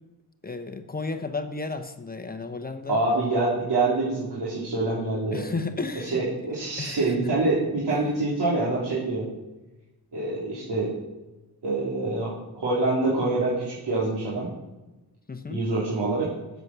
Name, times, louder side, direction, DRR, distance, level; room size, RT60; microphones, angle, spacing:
voice 1, 0.4-3.0 5.3-6.2 6.8-7.3 7.9-8.0 15.3-15.6, left 3 dB, 25° left, 6 dB, 0.9 m, -33 dB
voice 2, 2.9-5.4 6.0-9.2 10.1-11.0 11.6-14.5 15.5-16.3, right 2 dB, 85° right, -8 dB, 3.7 m, -26 dB
13.5 x 8.2 x 6.2 m, 1.1 s
wide cardioid pair, 125°, 39 cm